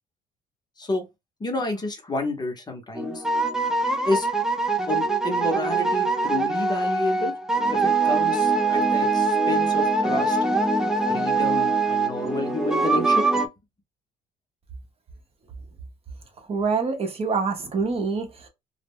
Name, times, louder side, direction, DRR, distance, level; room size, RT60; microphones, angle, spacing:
voice 1, 1.4-3.2 4.0-4.3 4.9-7.4 7.7-10.4 11.1-13.4, left 2 dB, 25° left, 0.7 m, -30 dB
sound 1, 3.0-13.5, right 3 dB, 5° right, 0.3 m, -23 dB
voice 2, 16.5-18.5, right 4 dB, 35° right, 0.7 m, -26 dB
2.1 x 2.0 x 3.4 m
cardioid pair, 110°, 17 cm